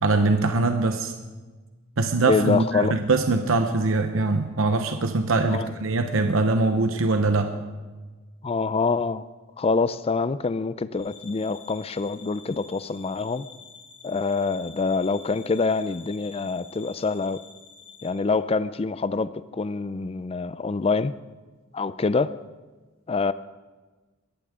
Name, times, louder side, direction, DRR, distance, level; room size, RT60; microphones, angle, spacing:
voice 1, 0.0-1.1 2.0-7.6, right 3 dB, 85° right, 0.9 m, -22 dB
voice 2, 2.3-2.9 5.5-5.7 8.4-9.2 9.6-13.5 14.0-17.4 18.0-21.1 21.7-22.3 23.1-23.3, left 4 dB, 30° left, 0.4 m, -25 dB
sound 1, 10.9-18.1, left 5 dB, 85° left, 5.2 m, -48 dB
21.5 x 14.5 x 3.7 m
head